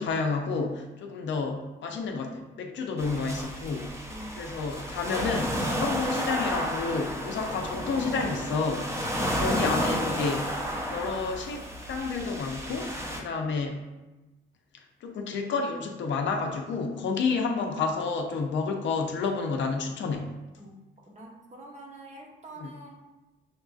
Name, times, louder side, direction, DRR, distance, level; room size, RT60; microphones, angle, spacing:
voice 1, 0.0-3.9 4.4-10.5 10.9-11.6 11.9-13.8 15.0-20.3 22.6-22.7, left 4 dB, 65° left, 3 dB, 0.6 m, -30 dB
sound 1, 3.0-13.2, equal, 15° right, 0.7 m, -32 dB
voice 2, 21.1-23.0, right 1 dB, 35° right, -1 dB, 1.0 m, -46 dB
6.0 x 2.5 x 2.4 m, 1.1 s
cardioid pair, 90°, 20 cm